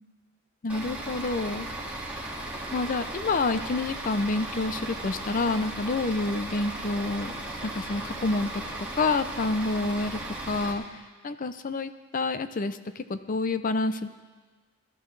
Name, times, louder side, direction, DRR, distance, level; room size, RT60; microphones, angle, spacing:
voice 1, 0.6-1.7 2.7-7.3 7.6-8.6 9.0-10.2 10.5-10.8 11.2-14.1, left 3 dB, 40° left, 11 dB, 0.6 m, -28 dB
Bus / Idling, 0.7-10.7, right 1 dB, 5° right, 2.1 m, -36 dB
21.0 x 12.5 x 3.3 m, 1.4 s
head